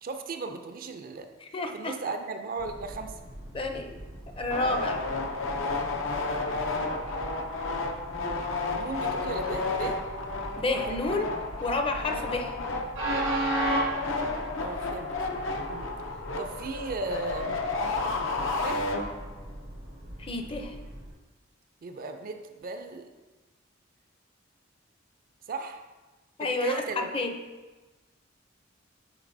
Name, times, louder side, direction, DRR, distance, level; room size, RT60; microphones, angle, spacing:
voice 1, 0.0-1.3 1.7-3.2 8.1-10.0 14.6-15.3 15.7-15.9 16.4-17.6 18.6-18.9 21.8-23.1 25.5-25.9 26.4-27.1, right 3 dB, 45° right, 7 dB, 0.4 m, -36 dB
voice 2, 1.4-1.9 3.5-4.0 4.4-5.0 10.6-11.3 11.6-12.5 20.2-20.7 26.4-27.3, left 2 dB, 30° left, 5 dB, 0.5 m, -30 dB
Train, 2.6-21.1, right 1 dB, 85° right, 1.7 m, -38 dB
sound 1, 4.5-19.5, left 3 dB, 80° left, 0.6 m, -32 dB
9.0 x 4.4 x 2.6 m, 1.2 s
head